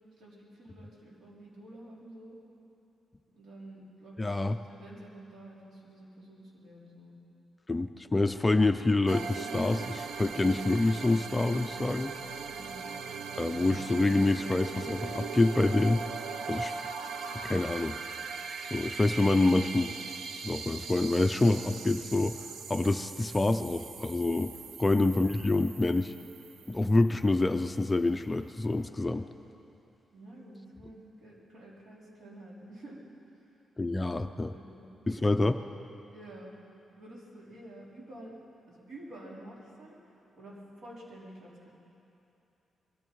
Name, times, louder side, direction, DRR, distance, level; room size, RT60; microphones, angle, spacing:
voice 1, 0.2-2.4 3.3-7.2 11.0-11.1 12.6-12.9 29.1-29.2 30.1-33.0 34.5-35.3 36.1-36.5 37.0-38.3 38.7-40.0 40.4-41.5, right 1 dB, 65° right, -5 dB, 3.8 m, -49 dB
voice 2, 4.2-4.6 7.7-12.1 13.4-16.0 16.5-16.8 17.4-17.9 18.7-19.9 20.4-22.4 22.7-26.1 26.7-29.2 33.8-34.5 35.1-35.6, left 2 dB, 15° left, 8 dB, 0.4 m, -27 dB
sound 1, 9.1-27.5, right 5 dB, 90° right, 0.7 m, -40 dB
22.0 x 14.5 x 4.6 m, 2.9 s
wide cardioid pair, 160°, 0 cm